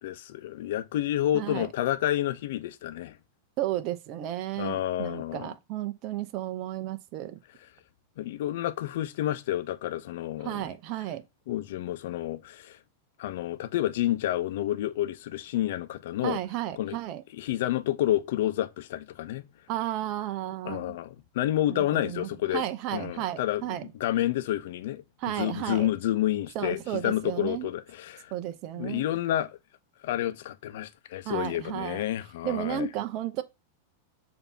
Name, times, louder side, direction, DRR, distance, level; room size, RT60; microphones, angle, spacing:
voice 1, 0.0-3.2 4.6-5.5 8.2-10.7 11.5-12.8 13.2-16.4 16.8-17.0 17.3-19.4 20.6-22.6 22.9-25.0 25.4-28.3 28.8-29.5 30.0-32.9, left 13 dB, 65° left, 0.7 m, -29 dB
voice 2, 1.3-1.7 3.6-7.4 10.4-11.2 16.2-17.2 19.7-21.0 21.7-23.9 25.2-25.9 26.5-27.7 28.3-29.0 31.2-32.0 32.4-33.4, right 12 dB, 45° right, 0.8 m, -33 dB
6.9 x 2.9 x 5.6 m
hypercardioid pair, 100°, 0 cm